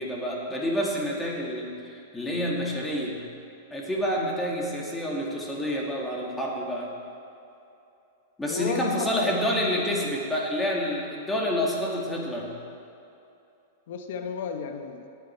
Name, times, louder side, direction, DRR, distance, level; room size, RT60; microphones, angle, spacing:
voice 1, 0.0-3.2 3.7-6.9 8.4-12.5, equal, 5° left, -3 dB, 2.2 m, -28 dB
voice 2, 8.5-9.4 13.9-15.1, left 6 dB, 65° left, 6 dB, 1.0 m, -33 dB
17.0 x 9.3 x 4.6 m, 2.8 s
supercardioid pair, 145°, 0 cm